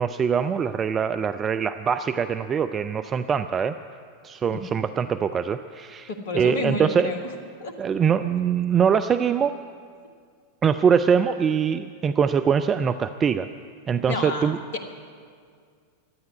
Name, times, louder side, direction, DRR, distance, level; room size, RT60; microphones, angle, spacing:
voice 1, 0.0-3.7 4.2-7.1 7.8-9.6 10.6-13.5 13.9-14.6, right 7 dB, 25° right, 10 dB, 0.3 m, -23 dB
voice 2, 6.1-7.2 7.6-7.7 14.0-14.9, left 3 dB, 60° left, 5 dB, 1.5 m, -30 dB
12.5 x 9.3 x 9.4 m, 2.1 s
figure-of-eight pair, 90°, 0 cm